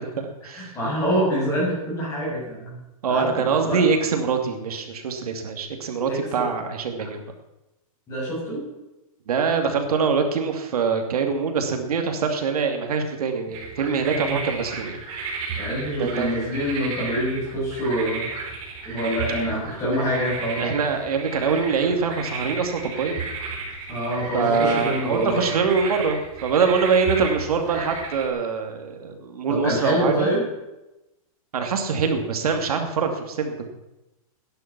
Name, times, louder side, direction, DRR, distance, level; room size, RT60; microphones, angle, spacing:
voice 1, 0.0-0.8 3.0-7.2 9.3-15.0 16.0-16.4 20.6-23.2 24.3-30.3 31.5-33.6, right 5 dB, 80° right, 5 dB, 2.5 m, -24 dB
voice 2, 0.5-2.8 3.1-3.8 6.1-6.4 8.1-8.6 14.1-14.4 15.6-18.3 18.8-20.7 23.9-25.5 29.5-30.5, equal, 15° left, -5 dB, 7.4 m, -26 dB
sound 1, 13.5-28.3, right 4 dB, 30° right, 4.0 m, -34 dB
16.5 x 10.5 x 6.1 m, 0.98 s
hypercardioid pair, 165°, 19 cm